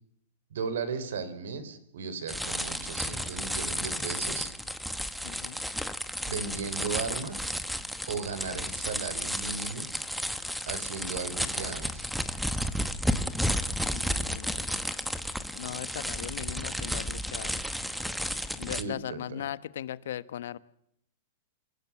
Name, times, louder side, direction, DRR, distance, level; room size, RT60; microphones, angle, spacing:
voice 1, 0.5-4.5 6.3-7.5 8.1-9.9 10.7-12.1 18.7-19.4, right 5 dB, 85° right, 14 dB, 4.2 m, -36 dB
sound 1, 2.3-18.8, equal, ahead, 1.0 m, -33 dB
voice 2, 5.2-5.6 13.9-14.8 15.5-17.5 18.6-20.6, left 11 dB, 75° left, 16 dB, 1.1 m, -38 dB
28.0 x 16.5 x 7.3 m, 0.75 s
supercardioid pair, 165°, 0 cm